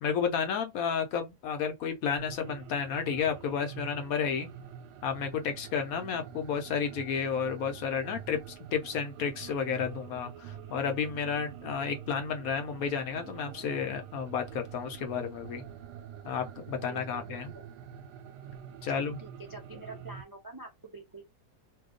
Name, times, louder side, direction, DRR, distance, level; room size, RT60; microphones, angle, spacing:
voice 1, 0.0-4.5 5.0-15.6 16.2-17.5 18.8-19.2, left 6 dB, 70° left, 1.0 m, -32 dB
sound 1, 2.2-20.2, right 9 dB, 85° right, 1.1 m, -46 dB
voice 2, 16.9-17.7 18.9-21.3, right 3 dB, 30° right, 0.4 m, -46 dB
2.8 x 2.2 x 3.7 m
omnidirectional pair, 1.7 m